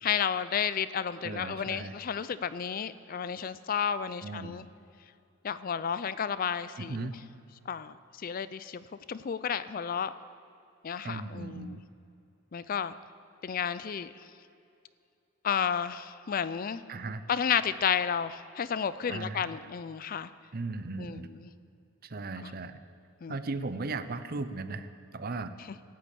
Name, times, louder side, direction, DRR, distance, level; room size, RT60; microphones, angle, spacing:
voice 1, 0.0-4.6 5.4-7.1 7.7-10.1 10.8-11.8 12.5-13.0 13.4-14.1 15.4-16.8 17.3-20.3 21.0-21.5 22.4-22.5 23.2-23.4, left 7 dB, 40° left, 15 dB, 0.4 m, -32 dB
voice 2, 1.2-1.9 4.2-4.7 6.8-7.2 11.0-11.8 16.9-17.2 19.1-19.6 20.5-21.3 22.0-22.8 23.3-24.9 25.1-25.5, right 3 dB, 45° right, 11 dB, 0.7 m, -37 dB
13.0 x 8.7 x 8.5 m, 2.5 s
head